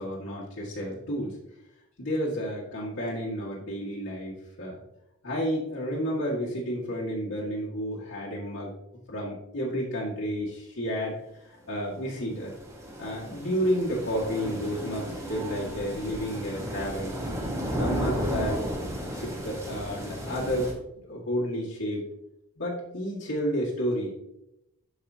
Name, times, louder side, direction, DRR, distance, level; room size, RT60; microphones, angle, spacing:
voice 1, 0.0-1.4 2.0-4.8 5.2-8.7 9.1-12.5 13.0-17.2 17.8-18.6 19.1-20.7 21.0-22.1 22.6-24.3, equal, 75° left, -7 dB, 1.9 m, -31 dB
sound 1, 11.8-20.7, equal, 15° right, 1.3 m, -34 dB
12.0 x 4.9 x 2.8 m, 0.87 s
head